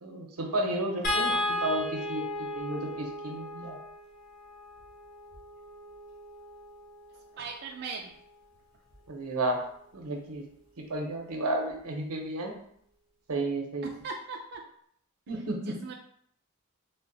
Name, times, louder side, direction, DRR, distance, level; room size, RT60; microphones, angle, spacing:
voice 1, 0.0-3.8 9.1-9.6 9.9-10.5 10.8-12.5 13.3-14.0 15.3-15.8, right 1 dB, 80° right, 2 dB, 0.7 m, -32 dB
sound 1, 1.0-7.4 8.9-9.1 9.4-9.6, left 1 dB, 40° left, 1.2 m, -35 dB
voice 2, 7.4-8.1 14.0-14.7 15.8-15.9, right 4 dB, 45° right, 1 dB, 0.3 m, -38 dB
3.7 x 2.1 x 3.9 m, 0.67 s
head